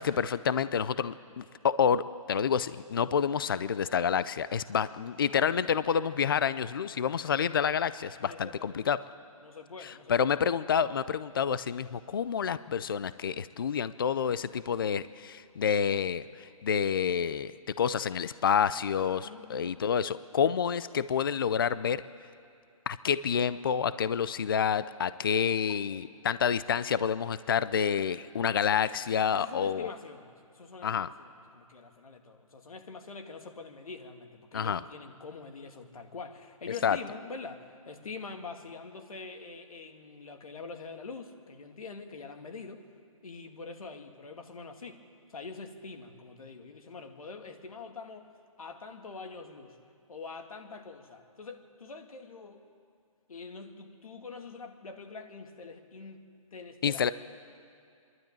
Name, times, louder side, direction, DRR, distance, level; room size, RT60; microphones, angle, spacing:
voice 1, 0.0-9.0 9.8-22.0 22.9-29.9 30.8-31.1 34.5-34.8 36.8-37.0 56.8-57.1, left 7 dB, 40° left, 15 dB, 0.5 m, -28 dB
voice 2, 8.3-8.8 9.4-10.3 19.0-19.7 25.7-26.2 29.3-42.8 43.2-45.0 45.3-48.3 48.6-49.8 50.1-52.6 53.3-56.2 56.5-57.0, left 4 dB, 75° left, 5 dB, 2.3 m, -45 dB
26.0 x 12.0 x 8.9 m, 2.4 s
hypercardioid pair, 175°, 18 cm